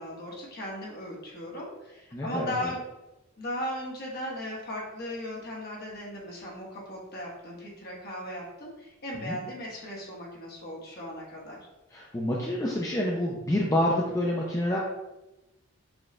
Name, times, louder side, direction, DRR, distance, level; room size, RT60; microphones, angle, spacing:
voice 1, 0.0-2.8 3.4-11.6, left 1 dB, 45° left, -3 dB, 1.3 m, -37 dB
voice 2, 2.1-2.7 9.2-9.4 11.9-14.8, left 1 dB, 15° left, -3 dB, 0.4 m, -28 dB
6.2 x 2.3 x 3.2 m, 0.98 s
head